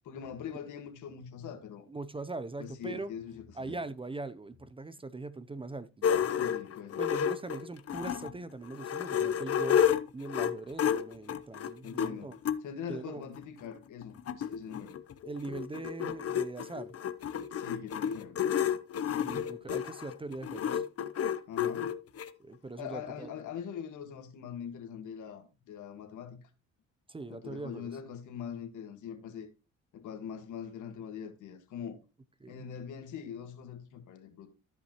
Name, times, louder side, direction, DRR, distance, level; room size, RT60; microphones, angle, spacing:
voice 1, 0.0-1.9 2.6-3.9 6.4-7.1 11.8-12.3 12.6-15.0 17.5-18.8 21.5-21.9 22.8-26.5 27.3-29.5 29.9-32.0 32.5-34.5, left 8 dB, 80° left, 1.7 m, -42 dB
voice 2, 1.9-3.1 3.6-6.3 7.0-9.9 10.1-12.3 12.9-13.2 15.2-16.9 19.1-20.9 22.4-23.3 27.1-27.9 32.4-32.7, right 3 dB, 20° right, 0.6 m, -41 dB
sound 1, 6.0-8.3 8.7-12.6 13.4-13.5 13.8-13.9 14.0-22.3, left 9 dB, 50° left, 0.8 m, -31 dB
13.0 x 5.5 x 3.0 m
cardioid pair, 90°, 30 cm